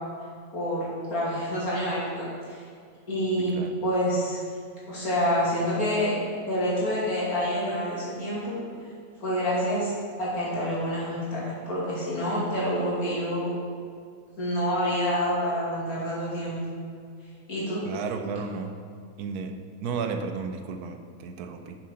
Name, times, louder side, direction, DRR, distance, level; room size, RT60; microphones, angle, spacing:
voice 1, 0.5-2.6 3.1-4.4 4.9-6.2 6.5-8.6 9.2-9.9 10.2-13.5 14.4-16.6 17.5-17.8, equal, 70° left, -8 dB, 3.1 m, -27 dB
voice 2, 17.8-18.7 19.2-19.5 19.8-21.8, right 5 dB, 85° right, 6 dB, 1.2 m, -33 dB
7.3 x 6.7 x 5.3 m, 2.2 s
omnidirectional pair, 1.6 m